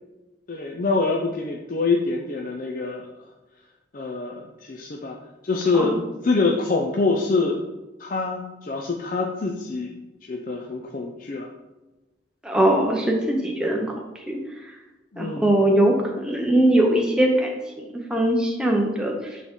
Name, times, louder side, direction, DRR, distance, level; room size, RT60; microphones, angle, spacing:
voice 1, 0.5-3.0 3.9-4.3 4.6-5.2 5.4-7.6 8.0-9.9 10.2-11.5 15.1-15.5, left 3 dB, 45° left, 1 dB, 0.5 m, -25 dB
voice 2, 12.4-13.9 14.3-14.4 15.2-17.5 17.8-19.4, right 1 dB, 5° right, 0 dB, 0.6 m, -21 dB
8.4 x 3.7 x 3.6 m, 1.1 s
head